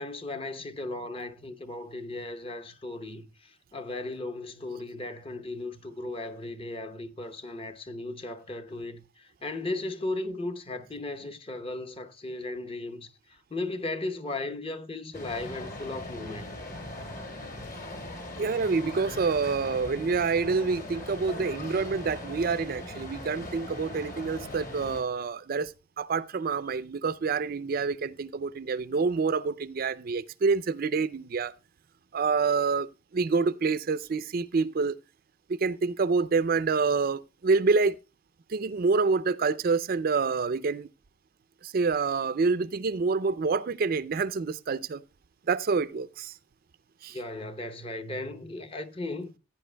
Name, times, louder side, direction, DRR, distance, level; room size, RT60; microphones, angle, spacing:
voice 1, 0.0-16.6 47.1-49.3, left 2 dB, 30° left, 0.8 m, -36 dB
sound 1, 15.1-25.0, left 1 dB, 55° left, 3.6 m, -40 dB
voice 2, 18.4-31.5 32.1-32.9 33.1-35.0 35.5-38.0 38.5-40.9 41.6-45.0 45.5-46.3 47.0-47.2, right 4 dB, 50° right, 0.4 m, -27 dB
16.0 x 9.4 x 2.2 m
head